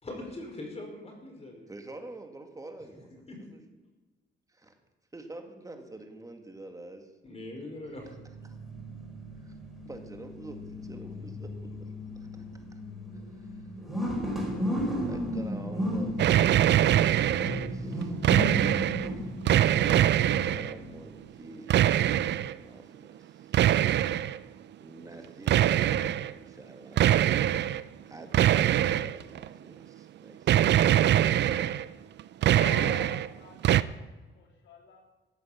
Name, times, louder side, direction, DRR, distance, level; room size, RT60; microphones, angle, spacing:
voice 1, 0.0-1.7 3.3-3.4 7.2-8.1, left 2 dB, 30° left, 1 dB, 5.0 m, -41 dB
voice 2, 1.7-3.2 3.5-3.6 4.5-4.8 5.1-7.1 8.5-8.6 9.4-9.5 9.9-12.4 13.3-13.7 14.5-18.2 19.2-19.3 19.6-24.1 24.8-27.5 28.1-30.7, right 2 dB, 15° right, 5 dB, 2.2 m, -47 dB
sound 1, 8.0-21.3, equal, ahead, 4.9 m, -35 dB
sound 2, 16.2-17.7 18.0-19.1 19.5-20.7 21.7-22.5 23.5-24.4 25.5-26.3 27.0-27.8 28.3-29.5 30.5-31.9 32.2-33.3 33.6-33.8, right 12 dB, 60° right, 0.5 m, -23 dB
voice 3, 32.4-35.0, left 4 dB, 70° left, 2 dB, 3.4 m, -45 dB
14.5 x 8.3 x 7.5 m, 1.2 s
cardioid pair, 90°, 20 cm